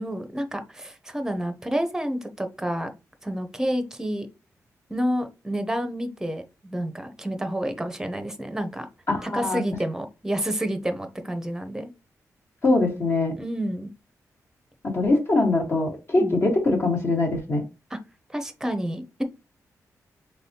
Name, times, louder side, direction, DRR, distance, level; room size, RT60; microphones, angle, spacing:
voice 1, 0.0-2.9 3.2-4.3 4.9-8.9 9.2-11.9 13.4-13.9 16.2-16.3 17.9-18.0 18.3-19.2, equal, 10° right, 0.7 m, -29 dB
voice 2, 9.1-9.6 12.6-13.3 14.8-17.6, left 2 dB, 45° left, 1.6 m, -22 dB
4.0 x 3.5 x 2.9 m
cardioid pair, 100°, 6 cm